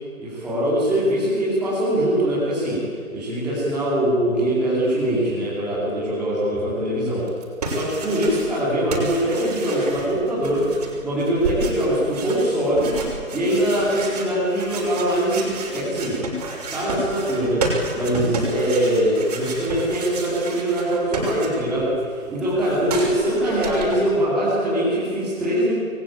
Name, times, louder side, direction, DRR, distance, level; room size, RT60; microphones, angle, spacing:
voice 1, 0.2-7.3 7.7-10.7 11.0-12.9 13.3-16.2 16.7-17.6 17.9-25.7, right 1 dB, ahead, -13 dB, 3.1 m, -22 dB
sound 1, 7.3-8.6 8.9-21.9 22.1-24.0, right 2 dB, 25° right, 6.2 m, -31 dB
27.5 x 23.0 x 8.9 m, 2.1 s
hypercardioid pair, 175°, 42 cm